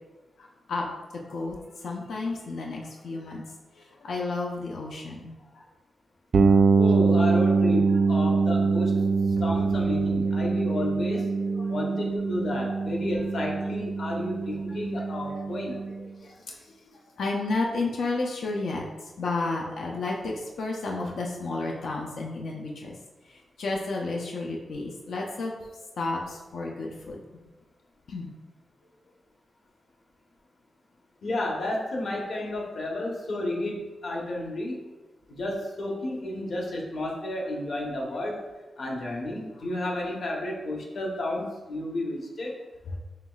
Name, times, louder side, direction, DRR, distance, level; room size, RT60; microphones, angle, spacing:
voice 1, 0.4-0.9 1.1-3.4 3.7-5.7 6.4-6.6 7.0-7.2 10.2-10.5 11.4-11.8 16.2-23.0 23.3-25.6 26.0-27.5 28.1-28.3 42.9-43.0, left 3 dB, 90° left, -1 dB, 0.5 m, -32 dB
sound 1, 6.3-16.0, right 4 dB, 55° right, 0.3 m, -24 dB
voice 2, 6.8-9.0 9.4-11.3 11.7-15.8 31.2-34.9 35.3-38.4 38.8-42.6, left 1 dB, 60° left, -1 dB, 0.9 m, -31 dB
5.6 x 3.1 x 2.3 m, 1.1 s
wide cardioid pair, 170°, 0 cm